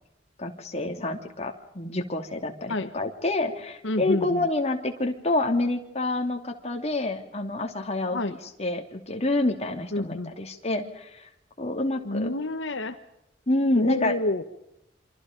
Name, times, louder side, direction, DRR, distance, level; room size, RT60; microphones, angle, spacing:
voice 1, 0.4-11.3 11.6-12.3 13.5-14.2, left 2 dB, 35° left, 4 dB, 2.8 m, -28 dB
voice 2, 3.8-4.5 8.1-8.3 9.9-10.3 12.0-13.0 13.7-14.4, left 2 dB, 75° left, 8 dB, 1.3 m, -28 dB
27.5 x 25.5 x 5.2 m, 0.82 s
head